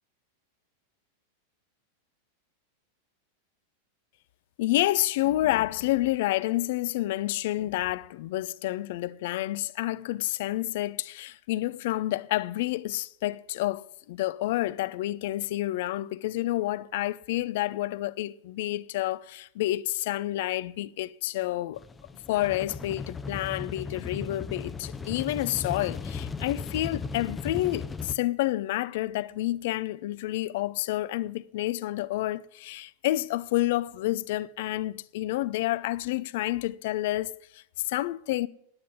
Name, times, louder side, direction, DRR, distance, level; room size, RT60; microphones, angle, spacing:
voice 1, 4.6-21.8 22.3-38.5, left 16 dB, 50° left, 0.5 m, -29 dB
sound 1, 21.8-28.1, left 4 dB, 15° left, 0.6 m, -37 dB
9.8 x 9.7 x 8.4 m
figure-of-eight pair, 90°, 0 cm